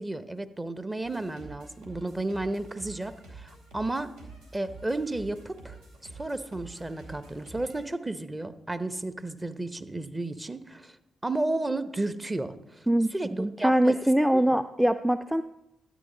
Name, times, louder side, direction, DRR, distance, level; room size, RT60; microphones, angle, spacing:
voice 1, 0.0-4.1 4.5-5.8 6.2-11.0 11.2-12.9 13.1-14.0 14.3-14.6, right 2 dB, 20° right, 11 dB, 0.9 m, -33 dB
sound 1, 1.0-7.9, right 3 dB, 80° right, 2.6 m, -48 dB
voice 2, 13.4-15.4, right 1 dB, 5° right, 10 dB, 0.4 m, -23 dB
13.0 x 8.9 x 3.9 m, 0.87 s
hypercardioid pair, 40°, 0 cm